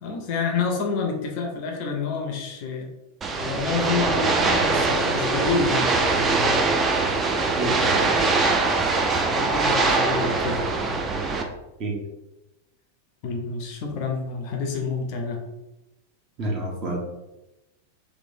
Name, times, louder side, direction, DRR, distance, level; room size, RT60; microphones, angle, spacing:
voice 1, 0.0-2.9 3.4-6.7 7.8-8.1 9.3-10.7 13.2-15.4, left 4 dB, 45° left, 2 dB, 0.4 m, -28 dB
sound 1, 3.2-11.4, right 3 dB, 20° right, 0.3 m, -22 dB
voice 2, 7.6-8.0 11.8-12.0 16.4-17.0, right 2 dB, 35° right, -1 dB, 0.7 m, -28 dB
3.1 x 2.0 x 2.6 m, 0.96 s
figure-of-eight pair, 90°, 0 cm